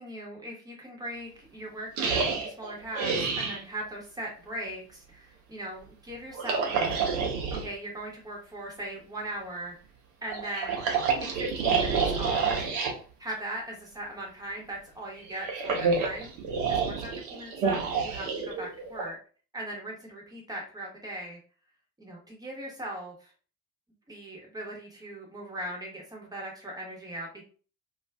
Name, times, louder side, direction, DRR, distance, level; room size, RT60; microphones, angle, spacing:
voice 1, 0.0-7.0 7.6-9.7 10.2-10.9 11.1-12.7 13.2-16.3 16.7-19.2 19.5-21.4 22.0-23.3 24.1-27.4, right 1 dB, 10° right, -2 dB, 0.9 m, -39 dB
sound 1, 2.0-3.6 6.3-7.7 10.3-13.0 15.2-19.1, right 5 dB, 55° right, 0.7 m, -28 dB
2.4 x 2.4 x 2.2 m, 0.38 s
figure-of-eight pair, 65°, 50 cm